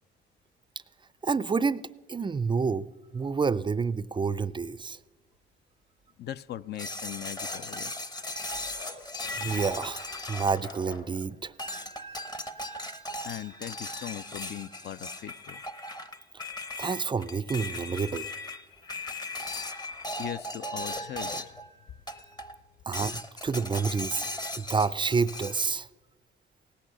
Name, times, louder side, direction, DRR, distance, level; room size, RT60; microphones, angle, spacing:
voice 1, 1.2-1.8 2.1-5.0 9.4-11.5 16.8-18.3 22.9-24.2 24.6-25.9, right 5 dB, 25° right, 0.4 m, -29 dB
voice 2, 6.2-7.9 13.2-15.6 20.2-21.4, left 12 dB, 60° left, 0.4 m, -39 dB
sound 1, 6.8-11.2 11.6-21.7 22.1-22.6 22.9-25.7, left 1 dB, 20° left, 0.8 m, -38 dB
Bark, 7.4-7.6 8.8-9.0 10.3-11.1, left 3 dB, 80° left, 4.4 m, -45 dB
17.5 x 8.6 x 6.7 m
cardioid pair, 90°, 20 cm